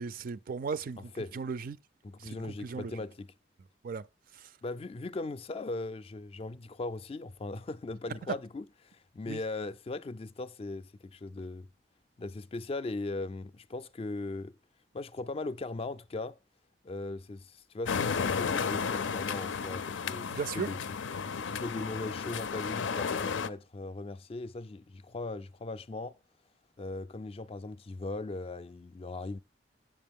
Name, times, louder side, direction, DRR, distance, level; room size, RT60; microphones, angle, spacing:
voice 1, 0.0-1.8 2.2-3.0 3.8-4.0 4.3-4.5 9.3-9.4 20.3-20.7, right 5 dB, 50° right, 0.4 m, -37 dB
voice 2, 2.0-3.3 4.6-11.7 12.2-14.5 14.9-16.4 16.8-20.8 21.4-26.2 26.8-29.4, left 2 dB, 30° left, 0.3 m, -39 dB
sound 1, 17.9-23.5, left 6 dB, 85° left, 0.5 m, -33 dB
7.6 x 7.5 x 3.6 m
head